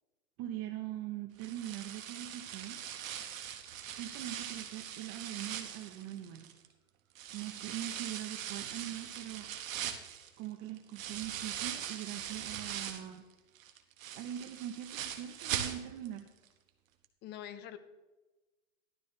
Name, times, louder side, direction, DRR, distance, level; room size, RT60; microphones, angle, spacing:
voice 1, 0.4-2.8 3.9-6.5 7.3-9.5 10.4-13.2 14.1-16.3, right 12 dB, 30° right, 5 dB, 1.0 m, -42 dB
sound 1, 1.4-6.7 7.2-13.2 13.6-16.2 16.5-16.6 17.0-17.1, right 9 dB, 65° right, 1.6 m, -41 dB
voice 2, 17.2-17.8, left 10 dB, 25° left, 11 dB, 0.9 m, -44 dB
14.5 x 12.5 x 3.3 m, 1.1 s
hypercardioid pair, 140°, 43 cm